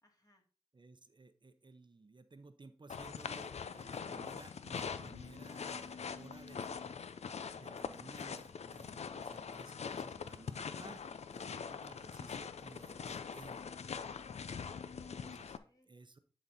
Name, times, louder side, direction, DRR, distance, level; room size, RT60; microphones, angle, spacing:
voice 1, 0.0-0.5, left 1 dB, 35° left, 2 dB, 2.2 m, -71 dB
voice 2, 0.7-6.8 7.5-11.0 11.3-13.6 15.2-15.6 15.8-16.2, right 3 dB, 45° right, 10 dB, 0.7 m, -56 dB
sound 1, 2.9-15.6, left 6 dB, 90° left, 0.4 m, -43 dB
10.5 x 4.0 x 4.1 m, 0.40 s
cardioid pair, 45°, 11 cm